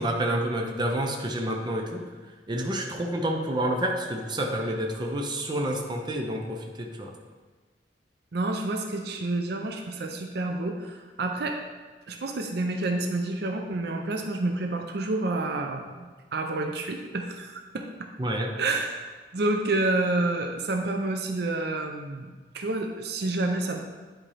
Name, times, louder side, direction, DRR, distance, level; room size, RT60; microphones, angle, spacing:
voice 1, 0.0-2.0 2.5-7.1 18.2-18.5, right 1 dB, 25° right, 1 dB, 0.7 m, -29 dB
voice 2, 8.3-11.6 12.1-18.1 18.6-23.8, right 2 dB, 60° right, 3 dB, 0.6 m, -29 dB
9.8 x 4.4 x 3.3 m, 1.4 s
head